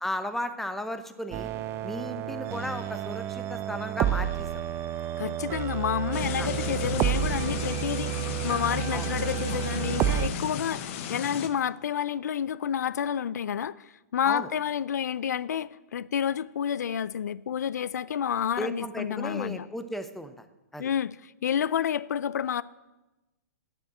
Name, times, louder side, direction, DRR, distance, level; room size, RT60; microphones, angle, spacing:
voice 1, 0.0-1.5 1.8-4.5 6.4-6.5 8.9-9.1 14.2-14.5 18.6-20.4 20.7-20.9, left 1 dB, 5° left, 0.8 m, -35 dB
sound 1, 1.3-10.3, right 12 dB, 25° right, 0.6 m, -30 dB
voice 2, 5.2-19.7 20.8-22.6, left 8 dB, 75° left, 0.4 m, -30 dB
sound 2, 6.1-11.5, left 7 dB, 50° left, 1.1 m, -35 dB
9.2 x 7.1 x 8.7 m
hypercardioid pair, 125°, 9 cm